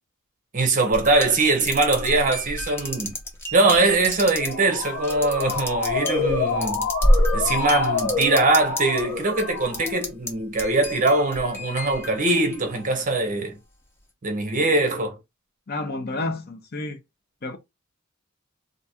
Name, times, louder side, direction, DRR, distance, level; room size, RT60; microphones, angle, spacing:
voice 1, 0.5-3.1 3.5-6.9 7.3-13.6 14.2-15.2, right 2 dB, 40° right, 0.8 m, -22 dB
sound 1, 0.9-9.0 9.4-10.3 10.6-13.0, equal, 10° left, 0.8 m, -28 dB
Motor vehicle (road) / Siren, 4.2-10.1, left 4 dB, 75° left, 1.2 m, -28 dB
voice 2, 15.7-17.0 17.4-17.6, left 2 dB, 45° left, 0.7 m, -30 dB
2.6 x 2.3 x 4.1 m
head